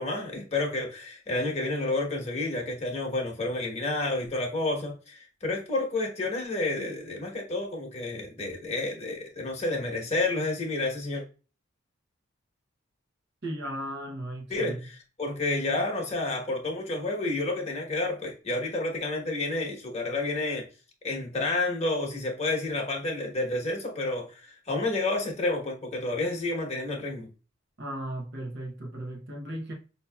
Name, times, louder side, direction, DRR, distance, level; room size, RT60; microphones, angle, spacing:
voice 1, 0.0-11.2 14.5-20.7 21.0-27.3, left 2 dB, 30° left, 1.1 m, -30 dB
voice 2, 13.4-14.9 27.8-29.7, right 1 dB, 50° right, 0.8 m, -36 dB
5.5 x 2.8 x 2.2 m
head